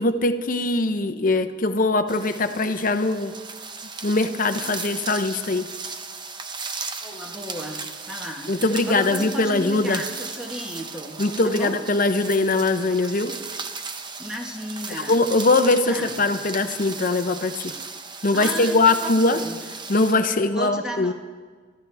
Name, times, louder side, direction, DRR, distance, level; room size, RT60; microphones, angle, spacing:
voice 1, 0.0-3.3 4.0-5.7 8.5-10.0 11.2-13.3 14.9-17.7 18.2-19.4 19.9-21.1, left 2 dB, 45° left, 9 dB, 0.8 m, -21 dB
sound 1, 2.1-20.1, right 4 dB, 25° right, 0.8 m, -36 dB
voice 2, 7.0-11.2 11.4-11.8 14.2-15.2 15.6-16.3 18.3-19.6 20.4-21.1, equal, 5° right, 0 dB, 1.5 m, -34 dB
24.5 x 13.5 x 3.5 m, 1.5 s
head